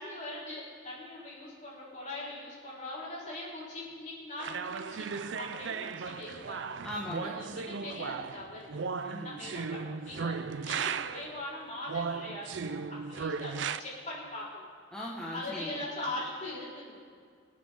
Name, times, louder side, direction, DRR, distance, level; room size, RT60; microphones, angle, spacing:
voice 1, 0.0-6.7 7.4-8.7 9.0-10.4 10.6-14.7 15.3-17.0, left 1 dB, 40° left, -6 dB, 4.3 m, -41 dB
sound 1, 4.4-11.4 11.9-13.8, right 5 dB, 75° right, 0.5 m, -36 dB
voice 2, 6.8-7.7 9.0-9.4 14.9-15.9, equal, 5° left, -6 dB, 1.4 m, -40 dB
26.0 x 8.7 x 3.7 m, 2.1 s
head